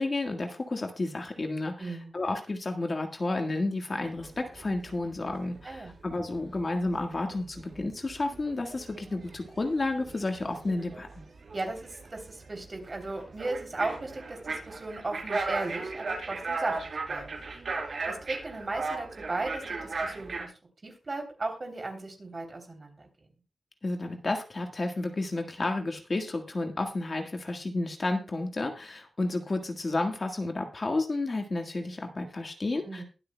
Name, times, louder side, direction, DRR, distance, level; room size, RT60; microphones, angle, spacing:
voice 1, 0.0-11.1 23.8-33.0, left 2 dB, 40° left, 4 dB, 1.5 m, -31 dB
voice 2, 1.8-2.1 5.6-6.0 11.5-16.8 17.1-17.4 18.1-20.5 20.8-23.1 32.8-33.0, right 2 dB, 35° right, 3 dB, 3.1 m, -36 dB
sound 1, 4.2-5.0 5.3-5.8 6.1-20.4, right 3 dB, 65° right, 4.4 m, -37 dB
22.0 x 8.2 x 2.2 m, 0.33 s
wide cardioid pair, 130°, 0 cm